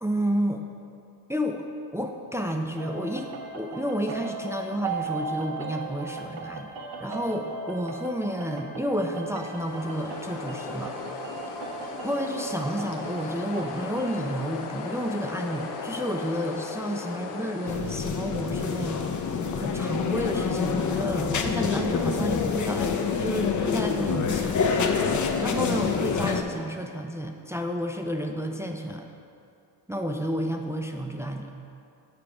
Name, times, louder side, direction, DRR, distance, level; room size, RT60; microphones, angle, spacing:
voice 1, 0.0-0.7 1.3-1.6 1.9-6.7 7.0-10.9 12.0-24.5 25.4-29.1 29.9-31.6, equal, 5° right, 3 dB, 0.5 m, -31 dB
sound 1, 2.8-14.1, right 4 dB, 65° right, 0.9 m, -38 dB
sound 2, 9.1-17.8, left 5 dB, 80° left, 0.8 m, -37 dB
sound 3, 17.7-26.4, left 5 dB, 40° left, 0.7 m, -27 dB
7.1 x 4.7 x 4.9 m, 2.5 s
hypercardioid pair, 55°, 48 cm